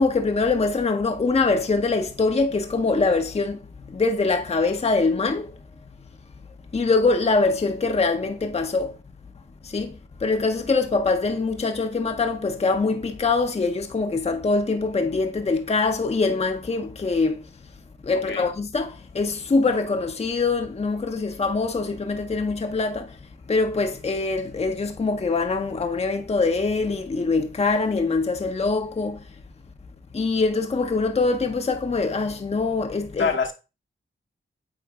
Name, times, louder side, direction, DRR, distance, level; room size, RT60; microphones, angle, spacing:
voice 1, 0.0-5.5 6.7-9.0 9.6-17.4 18.0-23.2 23.5-29.2 30.1-33.3, left 3 dB, 30° left, 0.6 m, -23 dB
voice 2, 18.1-18.5 33.2-33.5, left 5 dB, 65° left, 1.0 m, -25 dB
8.7 x 3.2 x 3.5 m
cardioid pair, 75°, 21 cm